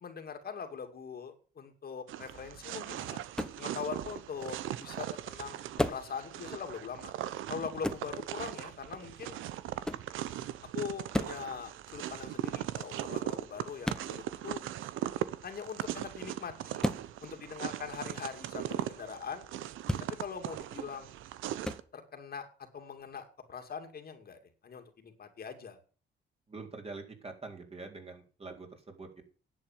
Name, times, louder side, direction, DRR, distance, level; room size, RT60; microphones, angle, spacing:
voice 1, 0.0-3.2 3.6-7.1 7.5-9.4 10.7-14.6 15.4-16.9 17.2-19.5 20.0-21.1 21.9-22.5 22.7-25.8, left 6 dB, 50° left, 6 dB, 2.5 m, -42 dB
sound 1, 2.1-21.8, right 12 dB, 85° right, 0.9 m, -39 dB
sound 2, 3.3-3.6 5.8-6.1 7.8-8.1 9.8-10.1 11.1-11.4 13.8-14.1 16.8-17.1 19.8-20.1 21.6-21.8, left 1 dB, 5° left, 1.3 m, -32 dB
voice 2, 26.5-29.2, right 3 dB, 30° right, 3 dB, 3.8 m, -45 dB
10.5 x 7.8 x 7.4 m, 0.38 s
cardioid pair, 90°, 20 cm